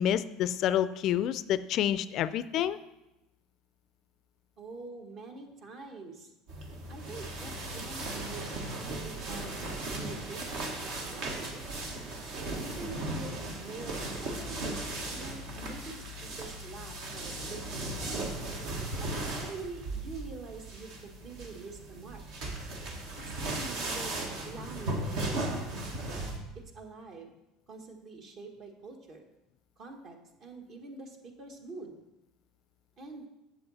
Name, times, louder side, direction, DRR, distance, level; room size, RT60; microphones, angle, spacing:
voice 1, 0.0-2.8, left 10 dB, 55° left, 15 dB, 0.3 m, -28 dB
voice 2, 4.6-6.3 6.9-11.8 12.5-18.4 19.0-22.2 23.2-25.8 26.7-27.3 27.7-29.2 29.8-31.9 33.0-33.3, right 3 dB, 50° right, 3 dB, 1.5 m, -46 dB
sound 1, 6.5-26.4, right 2 dB, 70° right, 1.5 m, -37 dB
7.8 x 7.3 x 4.2 m, 0.94 s
supercardioid pair, 100°, 0 cm